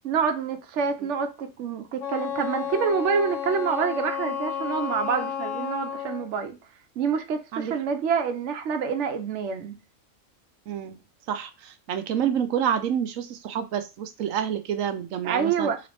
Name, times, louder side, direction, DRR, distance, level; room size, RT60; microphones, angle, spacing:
voice 1, 0.0-6.6 7.0-9.8 15.2-15.8, right 6 dB, 70° right, 1.1 m, -27 dB
Wind instrument woodwind instrument, 2.0-6.3, left 8 dB, 80° left, 1.2 m, -32 dB
voice 2, 10.7-11.0 11.3-15.7, right 9 dB, 90° right, 1.1 m, -28 dB
4.0 x 3.8 x 3.4 m
omnidirectional pair, 1.3 m